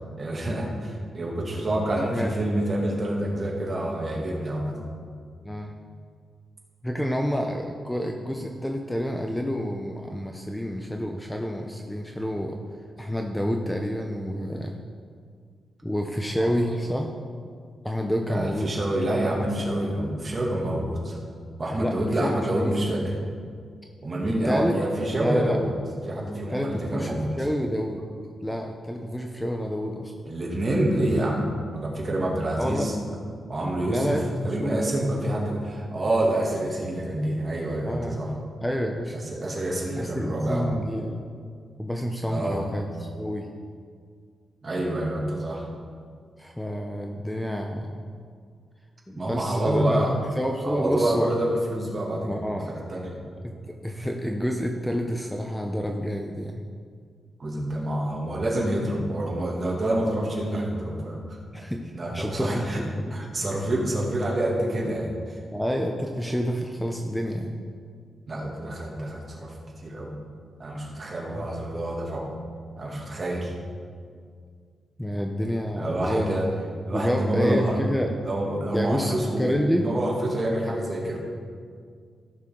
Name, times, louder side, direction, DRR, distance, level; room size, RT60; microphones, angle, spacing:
voice 1, 0.2-4.8 16.4-16.5 18.3-21.2 21.6-23.0 24.0-25.7 26.1-27.3 30.3-31.4 31.7-32.9 33.5-34.2 34.4-38.3 39.1-40.7 42.3-42.6 44.6-45.7 49.2-50.2 50.6-53.1 57.4-61.4 61.9-62.8 63.1-65.4 68.3-69.5 69.8-70.1 70.6-72.3 72.8-73.5 75.8-76.5 76.9-77.8 78.2-81.2, right 1 dB, 35° right, -3 dB, 2.2 m, -27 dB
voice 2, 6.8-12.6 13.0-14.8 15.8-17.1 17.8-18.7 21.8-23.0 24.4-24.8 25.2-25.6 26.5-28.0 28.4-30.1 32.6-32.9 33.9-34.8 35.5-35.6 37.8-38.3 38.6-39.2 40.0-41.3 41.8-43.5 46.4-48.0 49.1-51.3 52.2-52.8 53.4-56.6 61.5-63.3 65.5-67.6 71.3-71.5 75.0-76.4 76.9-78.1 78.7-79.9 80.7-80.8, equal, 5° left, 2 dB, 0.6 m, -29 dB
15.0 x 6.4 x 3.8 m, 2.1 s
cardioid pair, 115°, 0 cm